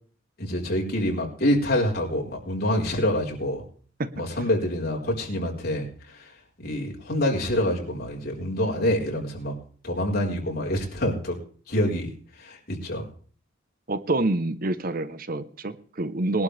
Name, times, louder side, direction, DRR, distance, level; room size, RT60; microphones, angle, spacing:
voice 1, 0.4-3.6 4.1-5.9 6.6-9.5 9.8-11.4 11.7-12.1 12.4-13.1, left 1 dB, 50° left, -2 dB, 4.6 m, -26 dB
voice 2, 13.9-16.4, right 2 dB, 45° right, 13 dB, 0.9 m, -27 dB
21.5 x 12.0 x 3.4 m, 0.43 s
head